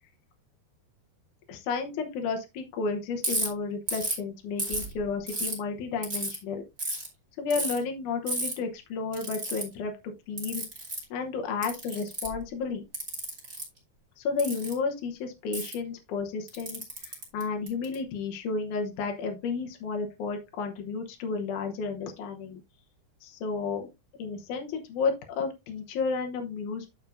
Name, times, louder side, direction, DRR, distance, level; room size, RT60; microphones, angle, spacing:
voice 1, 1.5-6.6 7.4-9.9 10.3-10.6 11.1-12.8 14.2-22.6 23.2-23.9 24.2-26.9, left 4 dB, 75° left, 3 dB, 1.8 m, -32 dB
Ratchet pawl, 3.2-3.5 3.9-4.2 4.6-5.5 6.0-6.4 6.8-7.1 7.5-7.8 8.3-8.5 9.1-9.6 10.4-11.0 11.6-12.4 12.9-13.6 14.4-14.7 15.5-15.7 16.5-17.9, right 1 dB, 20° right, 2.1 m, -32 dB
9.5 x 6.9 x 2.5 m, 0.24 s
omnidirectional pair, 5.0 m